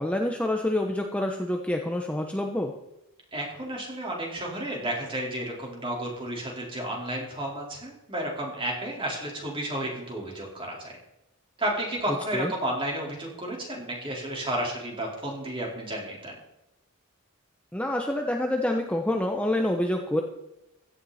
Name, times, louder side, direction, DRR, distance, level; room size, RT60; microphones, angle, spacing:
voice 1, 0.0-2.7 12.3-12.5 17.7-20.2, left 1 dB, 5° left, 2 dB, 1.0 m, -27 dB
voice 2, 3.3-11.0 11.6-16.4, right 1 dB, 25° right, -2 dB, 4.4 m, -32 dB
16.5 x 12.5 x 4.3 m, 0.92 s
head